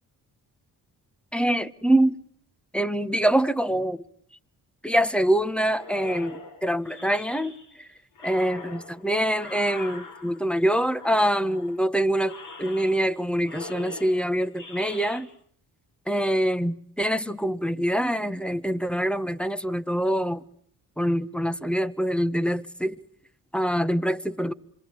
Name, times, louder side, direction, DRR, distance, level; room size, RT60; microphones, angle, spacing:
voice 1, 1.3-2.2 2.7-4.0 4.8-7.9 8.2-15.3 16.1-20.4 21.0-23.0 23.5-24.5, right 1 dB, ahead, 1.5 m, -25 dB
sound 1, 5.7-7.8 8.2-10.6 10.9-11.8 12.2-13.2 13.4-15.2, left 3 dB, 85° left, 8.0 m, -42 dB
26.5 x 23.0 x 9.7 m
supercardioid pair, 55°, 42 cm